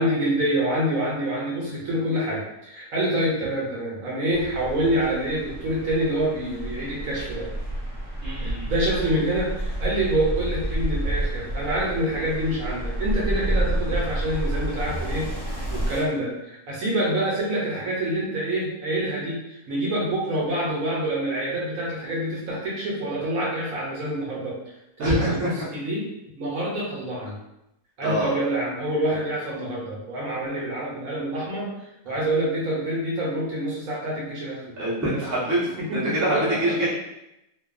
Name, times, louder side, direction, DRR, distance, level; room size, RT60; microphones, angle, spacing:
voice 1, 0.0-7.4 8.4-24.6 25.0-26.0 26.4-27.4 28.0-31.7 32.0-34.9 35.8-36.9, right 1 dB, 70° right, -4 dB, 1.1 m, -26 dB
sound 1, 4.3-16.0, right 1 dB, 35° left, 0.9 m, -29 dB
voice 2, 8.2-8.7 25.0-25.5 28.0-28.3 34.8-36.9, right 1 dB, 20° right, -9 dB, 0.5 m, -25 dB
2.6 x 2.3 x 2.4 m, 0.87 s
omnidirectional pair, 1.6 m